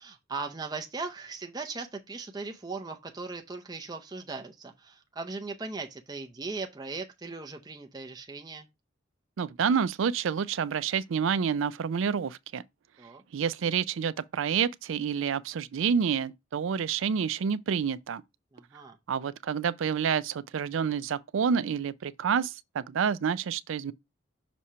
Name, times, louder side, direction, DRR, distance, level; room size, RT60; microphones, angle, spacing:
voice 1, 0.0-8.7 13.0-13.2 18.5-19.0, right 3 dB, 20° right, 0.5 m, -38 dB
voice 2, 9.4-12.6 13.3-18.2 19.1-23.9, right 7 dB, 75° right, 0.4 m, -28 dB
6.1 x 2.8 x 5.4 m
head